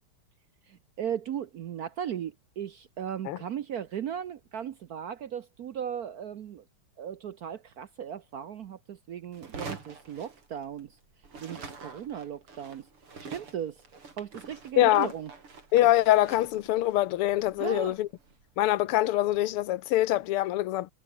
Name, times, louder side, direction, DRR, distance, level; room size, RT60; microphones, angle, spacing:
voice 1, 0.7-6.6 7.0-10.9 11.4-12.9 13.3-13.8 14.2-15.3 17.6-17.9, right 9 dB, 65° right, 1.0 m, -37 dB
sound 1, 9.3-10.9 11.2-18.4, right 4 dB, 80° right, 5.0 m, -46 dB
voice 2, 14.8-15.1 15.7-18.1 18.6-20.9, left 15 dB, 85° left, 1.7 m, -24 dB
omnidirectional pair, 2.4 m